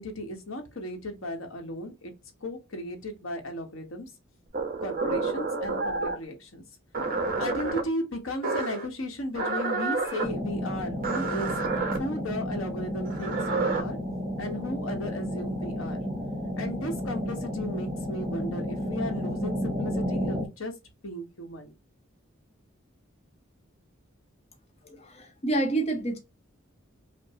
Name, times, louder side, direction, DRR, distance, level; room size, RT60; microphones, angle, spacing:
voice 1, 0.0-2.1 2.4-4.1 4.8-6.6 7.4-14.0 14.4-16.0 16.6-20.7 21.0-21.7, left 1 dB, 85° left, 1.1 m, -35 dB
sound 1, 4.5-6.2 6.9-7.8 8.4-8.8 9.3-10.3 11.0-12.0 13.0-13.8, right 3 dB, 45° right, 0.9 m, -29 dB
sound 2, 10.2-20.5, equal, 10° right, 1.1 m, -32 dB
voice 2, 24.8-26.2, right 2 dB, 30° left, 0.7 m, -28 dB
5.1 x 2.1 x 2.8 m
head